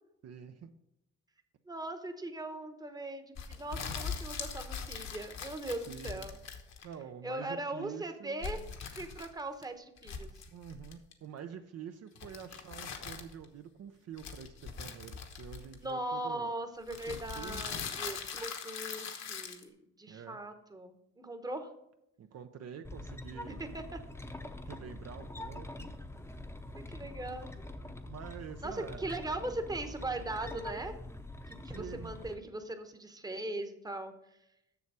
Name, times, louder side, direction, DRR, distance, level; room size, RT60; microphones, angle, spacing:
voice 1, 0.2-0.7 5.9-6.2 6.8-8.6 10.5-16.5 17.1-17.6 20.1-20.4 22.2-23.6 24.6-25.9 28.1-29.6 31.7-32.1, right 8 dB, 55° right, 7 dB, 0.6 m, -47 dB
voice 2, 1.7-6.4 7.2-8.6 8.9-10.3 15.8-21.7 23.5-24.0 26.7-27.5 28.6-30.9 31.5-34.4, right 2 dB, 15° right, 7 dB, 0.9 m, -40 dB
sound 1, 3.4-7.0 8.4-9.6 10.0-11.1 12.2-13.5 14.2-16.0 16.9-19.6, left 6 dB, 60° left, 1.2 m, -41 dB
sound 2, 22.8-32.3, left 1 dB, 10° left, 0.7 m, -44 dB
7.0 x 6.7 x 4.7 m, 0.83 s
cardioid pair, 90°, 30 cm